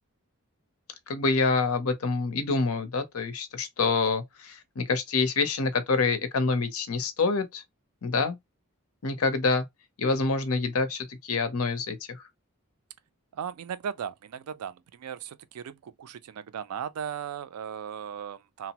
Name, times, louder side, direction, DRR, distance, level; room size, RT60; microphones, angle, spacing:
voice 1, 1.1-7.6 8.0-8.4 9.0-9.6 10.0-12.2, left 4 dB, 70° left, 0.6 m, -26 dB
voice 2, 13.3-18.7, right 8 dB, 85° right, 0.4 m, -37 dB
2.9 x 2.0 x 2.8 m
head